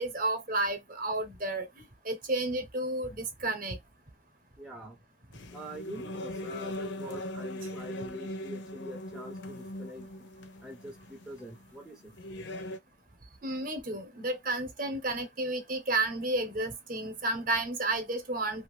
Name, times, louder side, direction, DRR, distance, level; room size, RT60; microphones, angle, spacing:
voice 1, 0.0-3.8 13.4-18.6, right 2 dB, 40° right, 0.8 m, -32 dB
voice 2, 4.6-5.0 5.5-10.1 10.6-12.1, equal, 5° right, 0.5 m, -44 dB
sound 1, 5.3-12.8, left 1 dB, 60° left, 0.5 m, -40 dB
2.7 x 2.5 x 3.1 m
head